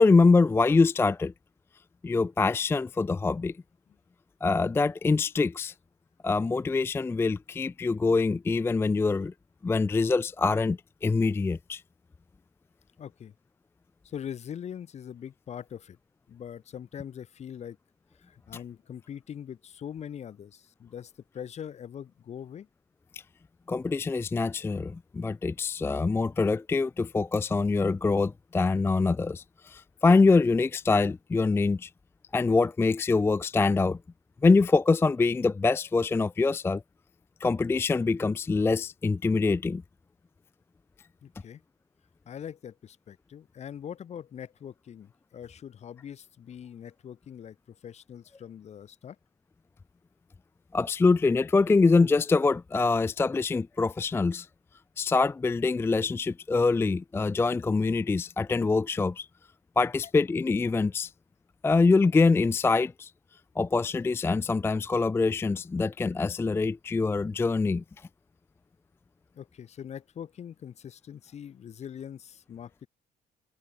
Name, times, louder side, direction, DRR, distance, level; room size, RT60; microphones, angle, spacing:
voice 1, 0.0-1.3 2.0-3.5 4.4-5.7 6.2-9.3 9.6-11.8 23.1-23.2 23.7-31.9 32.3-34.0 34.4-36.8 37.4-39.8 50.7-54.5 55.0-59.3 59.8-61.1 61.6-63.1 63.6-67.8, left 3 dB, 15° left, 0.4 m, -24 dB
voice 2, 13.0-13.3 14.0-16.0 16.3-17.8 18.2-22.7 41.2-41.6 42.3-49.2 69.3-72.9, left 9 dB, 40° left, 0.8 m, -42 dB
cardioid pair, 110°, 17 cm